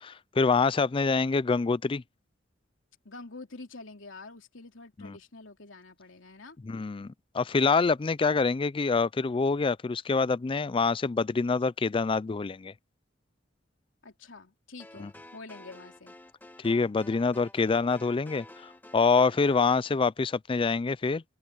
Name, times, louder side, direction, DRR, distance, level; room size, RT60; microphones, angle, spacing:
voice 1, 0.0-2.0 5.0-5.2 6.6-12.7 15.0-15.1 16.6-21.2, left 4 dB, 25° left, 0.4 m, -26 dB
voice 2, 3.0-6.6 14.0-16.2, left 3 dB, 85° left, 3.2 m, -47 dB
sound 1, 14.8-19.7, left 1 dB, 10° left, 1.7 m, -51 dB
head